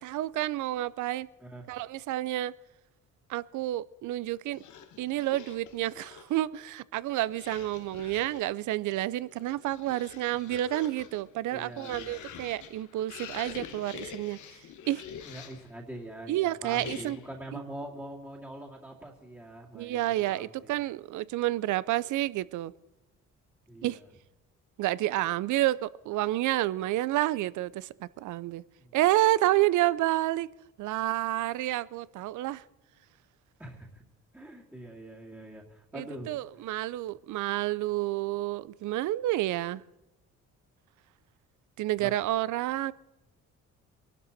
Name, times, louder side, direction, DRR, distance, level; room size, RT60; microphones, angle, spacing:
voice 1, 0.0-1.3 1.7-2.5 3.3-4.6 5.0-14.4 14.9-15.0 16.3-17.2 19.7-22.7 23.8-24.0 24.8-28.6 28.9-30.5 30.8-32.6 35.9-39.8 41.8-42.9, right 15 dB, 80° right, 0.6 m, -29 dB
voice 2, 1.4-1.8 11.5-12.4 15.2-20.8 23.7-24.1 28.8-28.9 33.6-34.0 34.3-36.7 42.0-42.1, right 1 dB, 5° right, 2.3 m, -44 dB
sound 1, 4.5-6.4 7.3-8.5 9.2-15.7 16.7-17.4, left 8 dB, 75° left, 1.3 m, -46 dB
23.0 x 12.5 x 4.1 m
cardioid pair, 90°, 30 cm